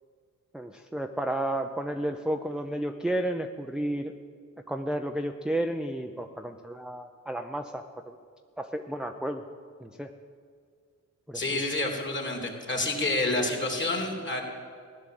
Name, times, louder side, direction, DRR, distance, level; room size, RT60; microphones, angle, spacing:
voice 1, 0.5-4.1 4.7-8.2 8.6-9.4 9.8-10.1 11.3-11.6, right 1 dB, ahead, 5 dB, 0.6 m, -32 dB
voice 2, 11.3-14.4, left 2 dB, 35° left, 1 dB, 3.1 m, -28 dB
15.5 x 11.0 x 7.7 m, 2.2 s
cardioid pair, 100°, 32 cm